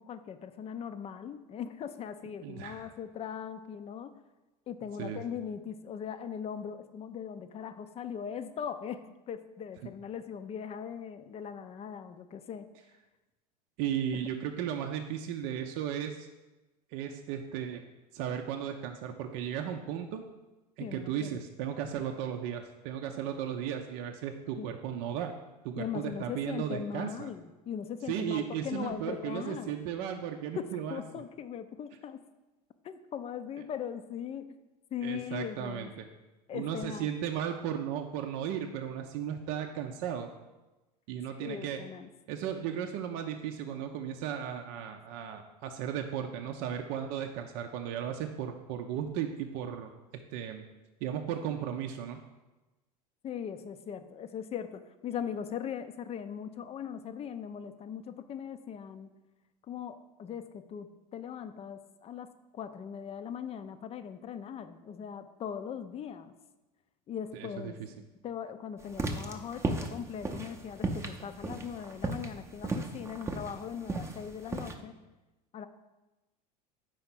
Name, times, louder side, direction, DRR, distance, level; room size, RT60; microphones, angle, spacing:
voice 1, 0.0-4.2 4.7-12.7 20.8-21.4 24.6-24.8 25.8-29.8 30.6-32.2 32.8-34.6 34.9-35.9 36.5-37.1 41.4-42.1 53.2-59.2 59.6-66.3 67.1-67.8 68.2-74.9 75.5-75.7, left 8 dB, 30° left, 11 dB, 0.5 m, -40 dB
voice 2, 2.4-2.9 5.0-5.2 13.8-16.3 16.9-17.8 18.1-20.2 20.8-25.3 25.6-27.3 28.1-31.0 35.0-36.0 36.5-40.3 41.1-41.8 42.3-49.9 50.3-50.6 51.0-52.2 67.3-67.7, right 9 dB, 60° right, 4 dB, 0.5 m, -35 dB
sound 1, 68.9-74.7, right 2 dB, 15° right, 0.6 m, -35 dB
4.8 x 4.3 x 5.9 m, 1.1 s
hypercardioid pair, 90°, 20 cm